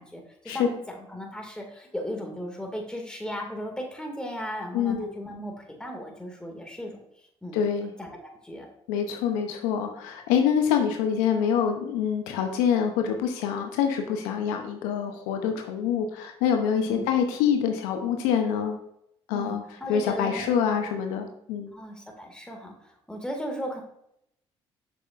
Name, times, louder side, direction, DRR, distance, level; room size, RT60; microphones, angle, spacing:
voice 1, 0.0-7.0 7.4-7.6 8.0-8.1 8.4-8.7 16.7-17.1 19.3-20.8 21.7-23.8, equal, 5° left, 1 dB, 2.2 m, -36 dB
voice 2, 4.7-5.1 7.5-7.9 8.9-18.8 19.3-19.6 19.9-21.7, left 8 dB, 80° left, 4 dB, 0.8 m, -26 dB
7.5 x 6.1 x 2.5 m, 0.76 s
hypercardioid pair, 55°, 13 cm